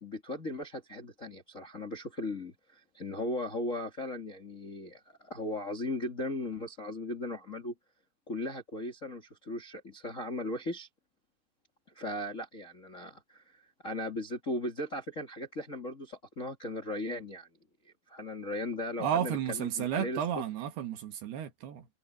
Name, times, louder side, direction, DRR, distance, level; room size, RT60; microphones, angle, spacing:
voice 1, 0.0-7.7 8.3-10.9 11.9-17.5 17.8-20.4, left 1 dB, 30° left, 1.5 m, -37 dB
voice 2, 19.0-21.9, right 9 dB, 65° right, 3.2 m, -32 dB
omnidirectional pair, 5.3 m